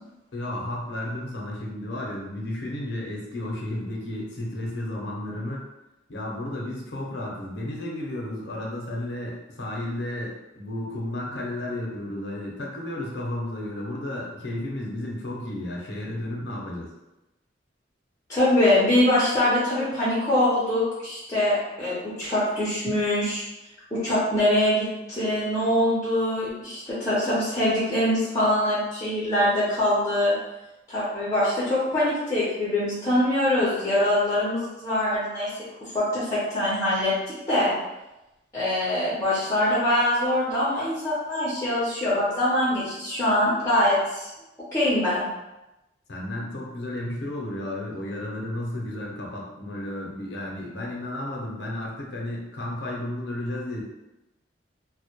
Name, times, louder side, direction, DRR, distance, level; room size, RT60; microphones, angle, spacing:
voice 1, 0.3-5.6 6.1-16.9 46.1-53.8, left 1 dB, 65° left, -3 dB, 0.6 m, -33 dB
voice 2, 18.3-23.4 23.9-30.3 30.9-35.5 35.8-37.1 37.5-37.7 38.5-44.3 44.7-45.2, left 1 dB, 15° left, -9 dB, 0.6 m, -23 dB
2.1 x 2.1 x 2.8 m, 0.98 s
head